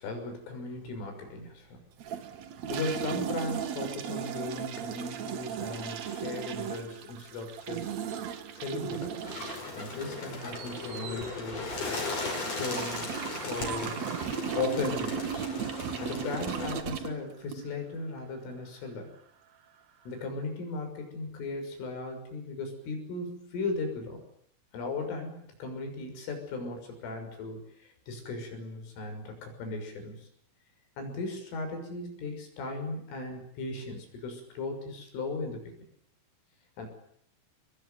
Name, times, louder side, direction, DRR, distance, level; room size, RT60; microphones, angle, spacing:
voice 1, 0.0-1.8 2.7-7.9 8.5-9.1 9.8-11.7 12.5-13.1 13.4-14.0 14.6-15.5 16.0-19.1 20.1-24.2 24.7-30.3 31.0-35.6 36.8-36.9, left 3 dB, 85° left, 4 dB, 8.9 m, -37 dB
sound 1, 2.0-17.9, right 8 dB, 80° right, 1.5 m, -37 dB
sound 2, 7.4-9.4 9.8-14.5, right 8 dB, 55° right, 2.8 m, -47 dB
Bird, 9.2-16.8, left 3 dB, 30° left, 6.2 m, -37 dB
25.0 x 21.5 x 9.5 m, 0.69 s
omnidirectional pair, 5.6 m